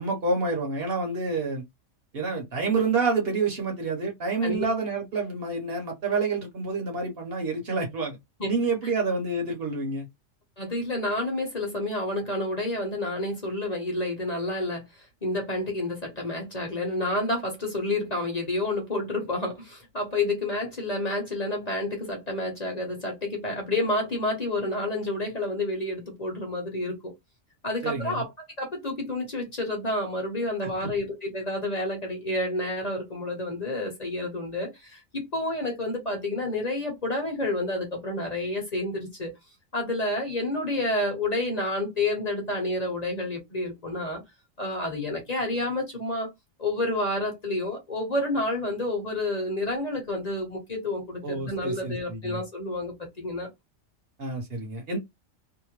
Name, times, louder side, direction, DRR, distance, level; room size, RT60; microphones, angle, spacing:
voice 1, 0.0-1.6 2.1-8.2 8.5-10.1 27.8-28.2 30.6-30.9 51.2-52.4 54.2-55.0, right 3 dB, 55° right, 1.0 m, -28 dB
voice 2, 10.6-14.8 15.2-27.1 27.6-28.3 28.6-39.3 39.7-44.2 44.6-46.3 46.6-53.5, left 2 dB, 35° left, 1.0 m, -29 dB
2.8 x 2.1 x 2.9 m
omnidirectional pair, 1.3 m